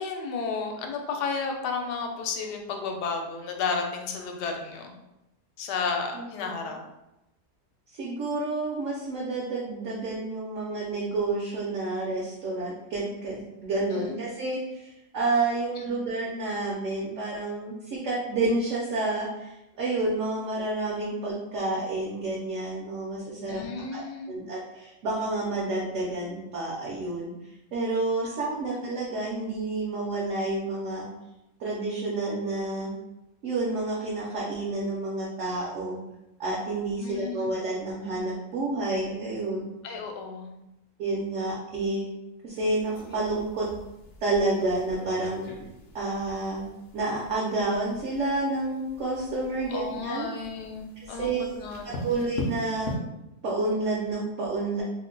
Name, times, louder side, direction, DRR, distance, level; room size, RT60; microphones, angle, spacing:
voice 1, 0.0-4.9 5.6-6.8 13.9-14.2 15.8-15.9 23.5-24.4 37.0-37.5 39.8-40.6 49.7-52.3, left 4 dB, 90° left, 3 dB, 1.2 m, -33 dB
voice 2, 6.1-6.7 7.9-23.6 23.9-27.3 27.7-31.1 31.6-32.9 33.4-36.0 36.4-39.7 41.0-42.1 42.4-43.7 44.2-45.4 45.9-46.7 46.9-50.3 51.0-51.4 51.8-52.9 53.4-54.8, right 2 dB, 65° right, -4 dB, 0.8 m, -29 dB
sound 1, 42.6-53.0, left 1 dB, 65° left, 0.6 m, -41 dB
2.8 x 2.1 x 3.7 m, 0.93 s
omnidirectional pair, 1.7 m